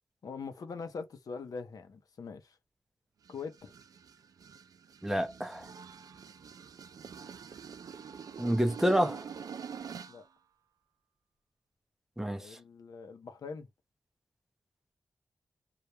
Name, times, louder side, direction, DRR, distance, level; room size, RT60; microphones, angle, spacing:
voice 1, 0.2-2.6 3.3-3.7 8.6-8.8 10.1-10.2 12.4-13.7, left 5 dB, 75° left, 0.6 m, -43 dB
sound 1, 3.2-10.3, right 7 dB, 75° right, 0.3 m, -46 dB
voice 2, 5.0-5.7 8.4-9.2 12.2-12.6, equal, 5° right, 0.4 m, -28 dB
2.3 x 2.1 x 2.8 m
wide cardioid pair, 115°, 6 cm